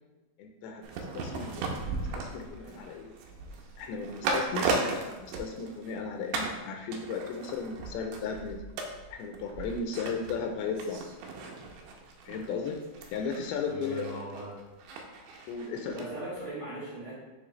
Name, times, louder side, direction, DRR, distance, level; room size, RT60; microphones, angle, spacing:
voice 1, 0.4-1.8 2.2-3.1 3.8-4.7 5.2-8.6 9.1-11.0 12.3-12.8 13.1-14.2 15.5-16.1, left 5 dB, 85° left, 3 dB, 2.5 m, -35 dB
sound 1, 0.8-6.0 6.3-6.6 6.9-16.1 16.4-16.5, right 3 dB, 85° right, 2.6 m, -36 dB
voice 2, 13.6-14.6 15.9-17.1, right 2 dB, 55° right, -9 dB, 1.5 m, -39 dB
8.9 x 3.4 x 3.1 m, 1.1 s
omnidirectional pair, 4.5 m